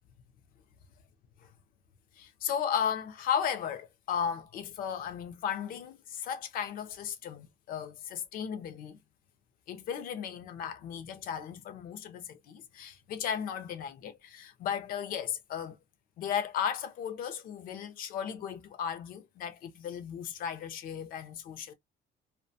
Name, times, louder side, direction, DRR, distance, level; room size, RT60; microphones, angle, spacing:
voice 1, 2.2-9.0 9.7-15.8 16.2-21.7, left 8 dB, 50° left, 0.5 m, -35 dB
2.5 x 2.2 x 2.6 m
cardioid pair, 175°, 19 cm